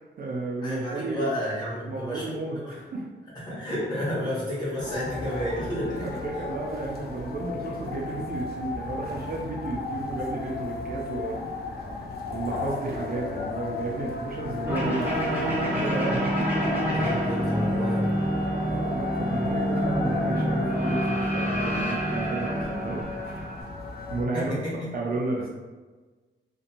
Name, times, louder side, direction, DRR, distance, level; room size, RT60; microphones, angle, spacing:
voice 1, 0.0-1.4 1.8-3.0 6.0-11.4 12.3-16.9 18.6-23.5 24.1-24.5 24.9-25.5, right 2 dB, 50° right, -2 dB, 0.4 m, -33 dB
voice 2, 0.6-2.8 3.3-6.2 16.9-18.1 24.3-24.9, equal, 20° left, -8 dB, 1.2 m, -31 dB
sound 1, 4.8-24.2, left 3 dB, 55° left, 0.4 m, -35 dB
sound 2, 14.6-23.6, equal, 10° right, 0.7 m, -27 dB
2.5 x 2.2 x 2.8 m, 1.3 s
wide cardioid pair, 135°, 19 cm